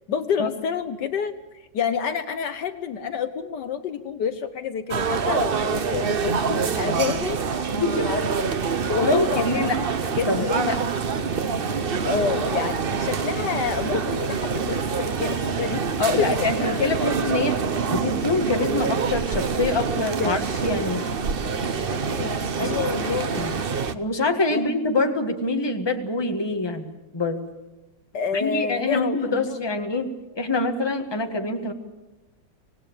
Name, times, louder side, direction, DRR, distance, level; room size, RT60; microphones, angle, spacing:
voice 1, 0.1-7.4 7.7-8.5 8.9-9.6 10.2-10.5 12.0-15.8 16.2-17.1 19.9-20.6 21.9-23.5 24.5-24.7 28.1-29.6, left 6 dB, 65° left, 10 dB, 1.5 m, -29 dB
sound 1, 4.9-23.9, right 5 dB, 45° right, 0.8 m, -26 dB
voice 2, 9.0-9.8 10.3-10.8 16.0-17.5 17.9-21.0 22.6-22.9 23.4-23.5 23.9-27.4 28.3-30.1 30.3-31.7, left 2 dB, 15° left, 4 dB, 1.6 m, -25 dB
25.5 x 18.5 x 7.3 m, 1.1 s
omnidirectional pair, 2.0 m